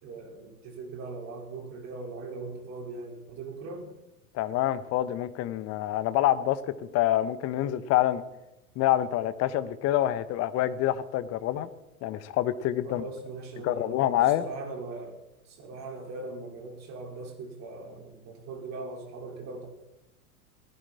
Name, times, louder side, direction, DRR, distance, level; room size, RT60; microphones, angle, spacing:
voice 1, 0.0-3.9 12.8-15.2 15.4-19.7, right 3 dB, 35° right, 2 dB, 5.3 m, -40 dB
voice 2, 4.3-8.2 8.7-11.7 12.0-13.0 13.6-14.5, left 13 dB, 35° left, 14 dB, 1.3 m, -26 dB
19.0 x 15.5 x 4.4 m, 0.94 s
figure-of-eight pair, 90°, 44 cm